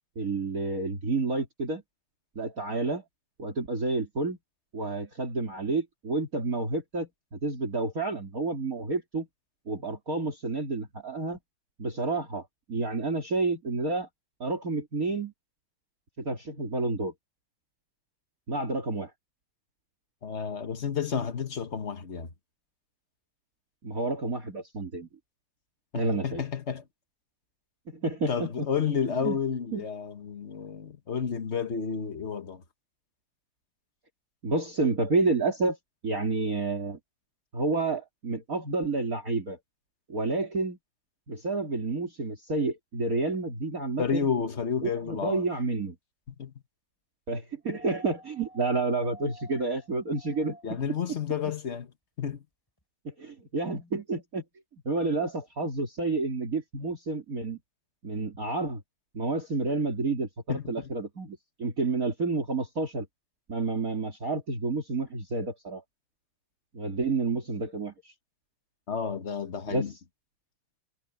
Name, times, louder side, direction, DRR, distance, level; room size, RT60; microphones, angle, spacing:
voice 1, 0.2-1.8 2.4-3.0 3.4-4.4 4.7-9.3 9.7-11.4 11.8-14.1 14.4-15.3 16.2-17.1 18.5-19.1 23.8-25.1 25.9-26.4 27.9-28.7 29.2-29.4 29.7-29.8 34.4-35.8 36.0-37.0 37.5-39.6 40.1-40.8 41.3-44.3 44.8-46.0 47.3-50.8 53.1-54.4 54.9-57.6 58.0-58.8 59.1-63.1 63.5-65.8 66.7-68.1 69.7-69.9, right 3 dB, 40° right, 3.6 m, -30 dB
voice 2, 20.2-22.3 25.9-26.8 28.3-32.6 44.0-45.4 46.4-46.5 50.6-51.9 52.2-52.4 60.5-60.9 68.9-69.9, left 6 dB, 35° left, 1.4 m, -31 dB
sound 1, 47.7-50.9 52.3-52.4, right 1 dB, 10° left, 8.1 m, -50 dB
omnidirectional pair, 2.3 m